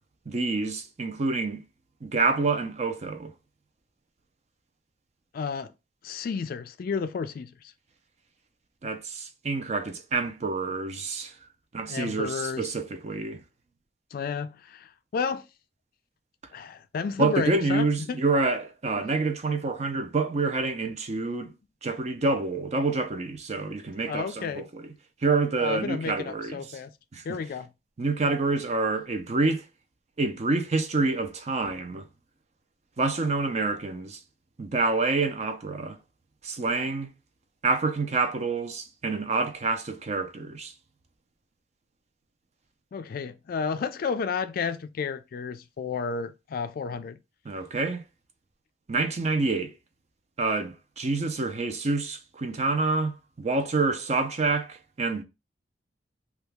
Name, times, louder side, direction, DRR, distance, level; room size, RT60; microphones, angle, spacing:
voice 1, 0.3-1.6 2.0-3.3 8.8-11.3 11.7-13.4 17.2-21.5 21.8-24.9 25.2-26.8 27.1-27.4 28.0-29.6 30.2-32.1 33.0-34.2 34.6-36.0 36.4-37.1 37.6-40.7 47.5-48.0 48.9-49.7 50.4-55.2, right 3 dB, 40° right, 0.5 m, -27 dB
voice 2, 5.3-5.7 6.0-7.5 11.9-12.7 14.1-15.4 16.5-18.2 23.6-23.7 24.0-24.6 25.6-26.9 27.2-27.7 42.9-47.2, left 5 dB, 55° left, 0.3 m, -32 dB
2.8 x 2.3 x 3.4 m
head